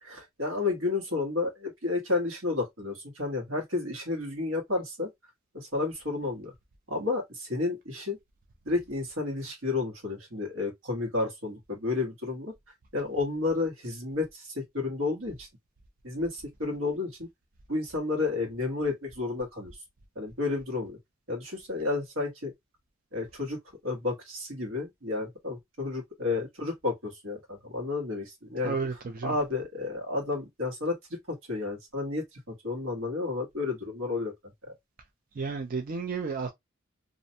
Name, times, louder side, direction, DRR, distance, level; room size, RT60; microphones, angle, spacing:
voice 1, 0.0-5.1 5.5-6.5 6.9-8.2 8.6-12.5 12.9-15.5 16.0-17.3 17.7-19.8 20.1-21.0 21.3-22.5 23.1-23.6 23.8-28.8 29.2-34.3 34.6-34.7, left 3 dB, 85° right, 1.2 m, -31 dB
voice 2, 28.6-29.3 35.4-36.5, right 4 dB, 45° right, 0.4 m, -32 dB
2.5 x 2.1 x 2.6 m
head